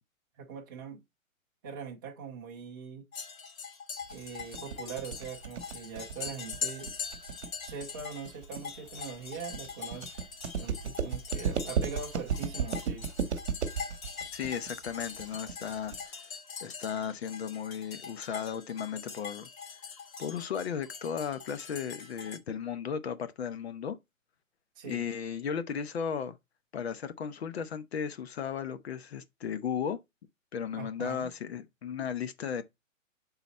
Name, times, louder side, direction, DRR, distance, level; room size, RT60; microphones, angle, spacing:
voice 1, 0.4-1.0 1.6-3.0 4.1-6.9 7.6-10.2 10.6-13.1 24.8-25.0 30.8-31.3, right 6 dB, 15° right, 0.7 m, -42 dB
sound 1, 3.1-22.4, left 6 dB, 80° left, 2.2 m, -43 dB
sound 2, 4.1-16.1, right 6 dB, 55° right, 1.1 m, -35 dB
voice 2, 14.3-16.2 16.6-19.5 20.2-24.0 24.8-26.4 26.7-30.0 30.5-32.6, left 7 dB, 50° left, 0.8 m, -35 dB
6.7 x 4.0 x 4.1 m
hypercardioid pair, 170°, 41 cm